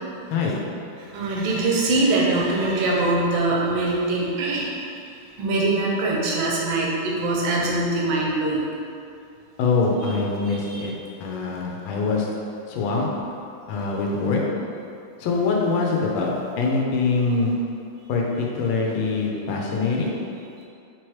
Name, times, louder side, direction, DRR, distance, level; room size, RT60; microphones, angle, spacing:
voice 1, 1.1-4.7 5.4-8.6 10.0-10.1 10.4-10.9, right 2 dB, 85° right, -3 dB, 1.5 m, -23 dB
voice 2, 9.6-10.9 11.2-12.2 12.7-13.1 13.7-14.4 15.2-16.3 16.6-17.5 18.1-20.1, left 4 dB, 75° left, -2 dB, 1.3 m, -23 dB
4.6 x 3.0 x 3.0 m, 2.5 s
omnidirectional pair, 2.2 m